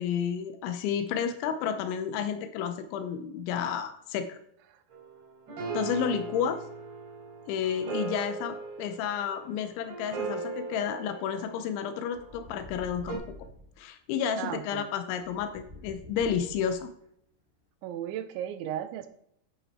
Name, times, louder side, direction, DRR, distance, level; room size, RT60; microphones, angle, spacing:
voice 1, 0.0-4.4 5.7-6.6 7.5-13.2 13.8-16.9, left 8 dB, 85° left, 9 dB, 3.2 m, -31 dB
sound 1, 4.9-12.3 13.1-13.2, right 4 dB, 65° right, 6.3 m, -38 dB
sound 2, 12.1-13.7 15.2-17.0, left 1 dB, 20° right, 1.4 m, -48 dB
voice 2, 14.4-14.9 17.8-19.1, right 10 dB, 85° right, 9 dB, 3.2 m, -35 dB
12.5 x 8.3 x 4.3 m, 0.72 s
omnidirectional pair, 5.3 m